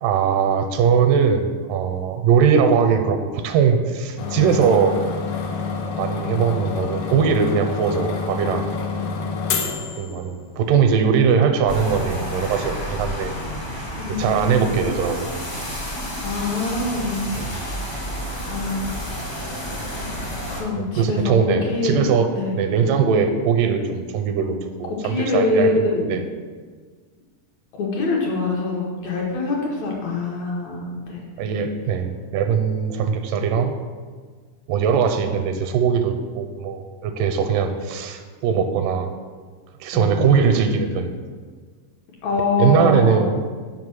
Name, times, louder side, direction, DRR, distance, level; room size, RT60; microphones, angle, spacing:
voice 1, 0.0-5.0 5.9-8.7 10.0-13.3 13.7-13.9 14.2-15.3 17.4-17.6 18.3-18.4 21.0-25.7 26.1-26.2 31.4-33.7 34.7-39.1 39.8-41.2 42.6-43.4, right 6 dB, 85° right, 7 dB, 2.1 m, -20 dB
sound 1, 4.2-10.7, left 5 dB, 90° left, 1.4 m, -28 dB
sound 2, 11.7-20.6, equal, 35° left, 0.8 m, -30 dB
voice 2, 13.9-14.8 16.2-17.8 18.5-19.0 20.5-22.5 25.0-26.2 27.8-31.3 38.5-38.7 39.9-40.5 42.2-43.3, left 3 dB, 65° left, -2 dB, 2.0 m, -24 dB
5.5 x 5.0 x 6.2 m, 1.6 s
omnidirectional pair, 3.8 m